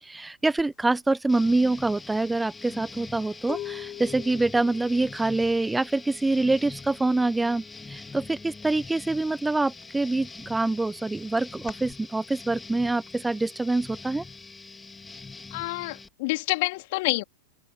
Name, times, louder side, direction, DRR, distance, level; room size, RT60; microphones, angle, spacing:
voice 1, 0.0-14.2, right 2 dB, 5° right, 1.2 m, -25 dB
sound 1, 0.6-0.7 1.1-6.8 7.0-7.5 7.8-9.0 9.4-11.9, left 13 dB, 35° left, 7.1 m, -43 dB
sound 2, 1.3-16.1, left 4 dB, 10° left, 3.3 m, -44 dB
voice 2, 15.5-17.2, left 23 dB, 50° left, 3.2 m, -28 dB
open air
figure-of-eight pair, 90°, 0 cm